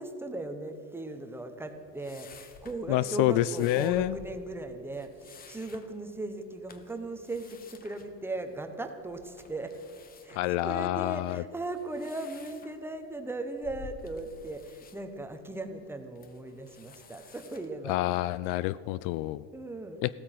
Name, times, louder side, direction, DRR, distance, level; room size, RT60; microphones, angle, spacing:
voice 1, 0.0-9.7 10.2-18.0 19.5-20.0, right 2 dB, 5° right, 7 dB, 1.0 m, -38 dB
sound 1, 1.6-18.6, left 5 dB, 25° left, 1.1 m, -54 dB
voice 2, 2.9-4.2 10.3-11.4 17.9-19.4 20.0-20.1, left 15 dB, 60° left, 18 dB, 0.4 m, -28 dB
15.5 x 13.0 x 5.8 m, 2.6 s
cardioid pair, 145°, 34 cm